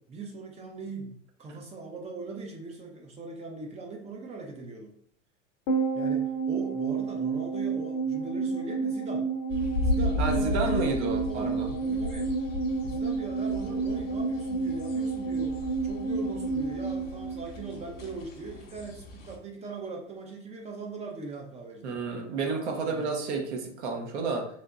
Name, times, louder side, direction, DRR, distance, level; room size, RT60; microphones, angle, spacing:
voice 1, 0.0-4.9 5.9-9.3 9.8-12.3 12.8-22.0 22.9-23.1, right 3 dB, 20° right, 1 dB, 0.5 m, -40 dB
sound 1, 5.7-18.2 18.4-18.5, right 4 dB, 40° left, 0.7 m, -30 dB
sound 2, 9.5-19.4, left 2 dB, 75° left, 0.8 m, -35 dB
voice 2, 10.2-11.7 21.8-24.5, right 4 dB, 65° right, 2 dB, 0.9 m, -31 dB
3.5 x 2.6 x 2.4 m, 0.66 s
hypercardioid pair, 95°, 37 cm